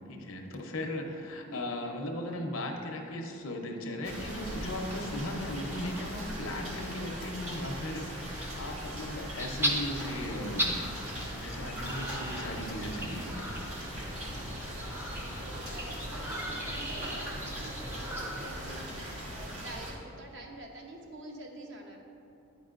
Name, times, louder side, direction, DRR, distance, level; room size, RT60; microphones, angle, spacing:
voice 1, 0.1-10.8 11.3-13.6, left 1 dB, 70° left, 3 dB, 0.7 m, -37 dB
voice 2, 1.0-1.9 15.2-22.0, right 1 dB, 55° right, 1 dB, 0.7 m, -48 dB
sound 1, 4.0-19.9, equal, 85° right, 1.4 m, -40 dB
sound 2, 9.4-18.5, equal, 10° right, 0.5 m, -37 dB
9.2 x 5.4 x 2.5 m, 2.7 s
head